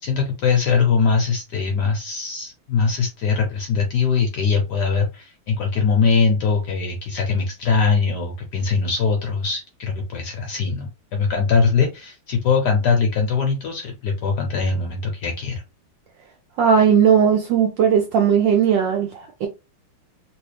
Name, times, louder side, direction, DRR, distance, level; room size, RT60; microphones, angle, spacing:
voice 1, 0.0-15.6, left 5 dB, 65° left, 1.0 m, -21 dB
voice 2, 16.6-19.5, right 7 dB, 70° right, 1.1 m, -17 dB
3.1 x 3.1 x 3.2 m
omnidirectional pair, 2.4 m